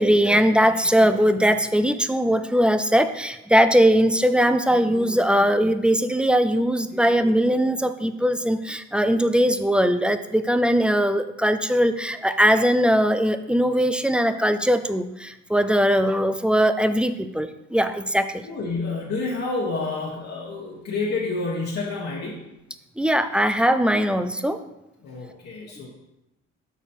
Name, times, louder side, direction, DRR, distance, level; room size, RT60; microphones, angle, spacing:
voice 1, 0.0-18.4 23.0-24.6, equal, 5° right, 10 dB, 0.3 m, -20 dB
voice 2, 18.4-22.4 25.0-25.9, left 3 dB, 55° left, -5 dB, 1.3 m, -29 dB
7.0 x 4.1 x 4.4 m, 0.93 s
cardioid pair, 90°, 30 cm